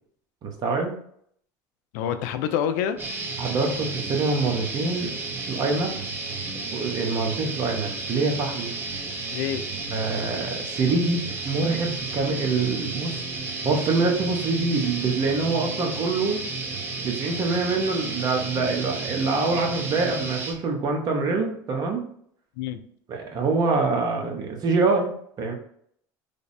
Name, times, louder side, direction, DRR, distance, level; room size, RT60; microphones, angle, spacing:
voice 1, 0.4-1.0 3.4-5.1 5.5-6.0 6.7-8.7 9.9-13.2 13.6-16.4 17.0-22.1 23.1-25.5, right 3 dB, 45° right, 2 dB, 0.9 m, -25 dB
voice 2, 1.9-3.0 9.3-9.6 22.6-22.8, left 9 dB, 80° left, 9 dB, 0.4 m, -27 dB
sound 1, 3.0-20.5, right 3 dB, 20° right, 0.7 m, -32 dB
3.3 x 2.0 x 4.1 m, 0.65 s
supercardioid pair, 100°, 9 cm